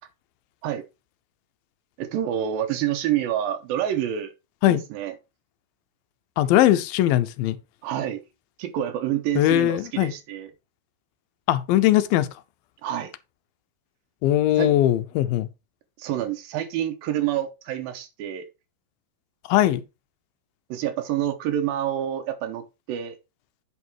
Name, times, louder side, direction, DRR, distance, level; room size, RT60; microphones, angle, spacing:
voice 1, 2.0-4.3 4.7-5.1 7.8-8.2 8.6-10.5 12.8-13.1 14.6-14.7 16.0-18.5 20.7-23.2, right 11 dB, 90° right, 2.6 m, -27 dB
voice 2, 6.4-7.6 9.4-10.1 11.5-12.3 14.2-15.5 19.5-19.8, left 14 dB, 90° left, 2.5 m, -20 dB
8.6 x 5.5 x 4.7 m
omnidirectional pair, 4.1 m